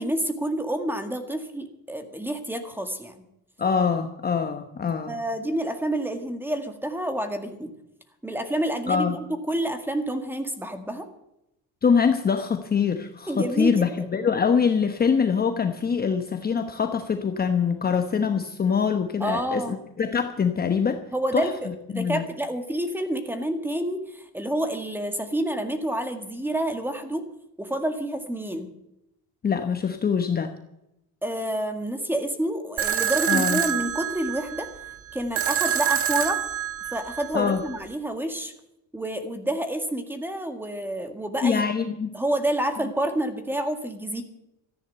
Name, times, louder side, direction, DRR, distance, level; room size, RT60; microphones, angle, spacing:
voice 1, 0.0-3.1 5.1-7.7 8.2-11.1 13.3-14.1 19.2-19.8 21.1-27.3 27.6-28.7 31.2-34.7 35.1-36.4 36.9-38.5 38.9-41.6 42.1-44.2, right 1 dB, 5° right, 7 dB, 1.8 m, -28 dB
voice 2, 3.6-5.2 8.9-9.2 11.8-21.0 21.3-22.2 29.4-30.5 33.3-33.6 37.3-37.6 41.4-42.1, left 6 dB, 25° left, 7 dB, 1.0 m, -24 dB
sound 1, 32.8-37.8, right 9 dB, 40° right, 1.6 m, -27 dB
14.0 x 10.0 x 7.9 m, 0.84 s
cardioid pair, 145°, 36 cm